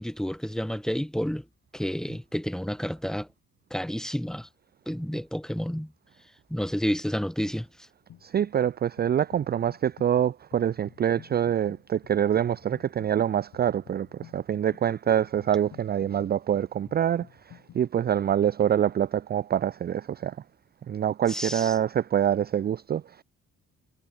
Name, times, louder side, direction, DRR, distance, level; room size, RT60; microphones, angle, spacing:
voice 1, 0.0-1.4 1.7-3.3 3.7-4.5 4.8-5.9 6.5-7.9 21.3-21.7, equal, ahead, 1.6 m, -30 dB
sound 1, 8.1-8.7 9.0-17.8, left 11 dB, 70° left, 3.2 m, -52 dB
voice 2, 8.2-20.4 20.9-23.2, right 9 dB, 35° right, 0.4 m, -25 dB
cardioid pair, 90°, 30 cm